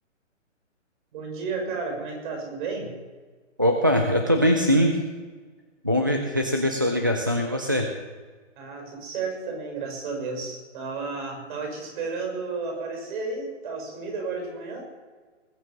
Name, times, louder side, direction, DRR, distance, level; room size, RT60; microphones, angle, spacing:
voice 1, 1.1-3.0 8.6-14.8, right 4 dB, 40° right, 2 dB, 5.9 m, -32 dB
voice 2, 3.6-5.0 5.8-7.9, equal, 20° right, 2 dB, 0.4 m, -22 dB
20.0 x 7.1 x 7.4 m, 1.4 s
hypercardioid pair, 160°, 38 cm